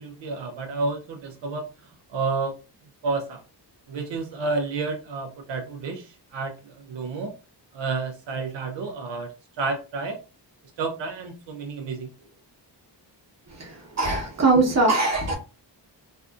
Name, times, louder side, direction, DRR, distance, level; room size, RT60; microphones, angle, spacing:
voice 1, 0.0-2.6 3.0-3.4 3.9-7.3 7.7-9.3 9.6-10.2 10.8-12.1, right 3 dB, 80° right, 0.6 m, -30 dB
voice 2, 13.5-15.4, right 3 dB, 35° right, 0.9 m, -22 dB
2.6 x 2.4 x 2.3 m
wide cardioid pair, 120°, 43 cm